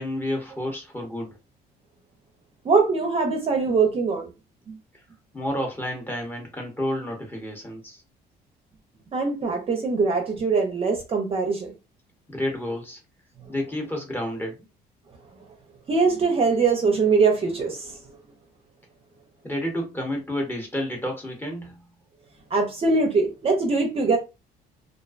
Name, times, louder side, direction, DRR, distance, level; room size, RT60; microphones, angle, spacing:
voice 1, 0.0-1.4 5.3-8.0 12.3-13.0 13.5-14.6 19.4-21.8, left 1 dB, 10° left, 0.9 m, -30 dB
voice 2, 2.6-4.3 4.7-4.8 9.1-11.7 15.9-17.9 22.5-24.2, right 4 dB, 35° right, 0.6 m, -22 dB
2.4 x 2.1 x 2.4 m
cardioid pair, 110°, 17 cm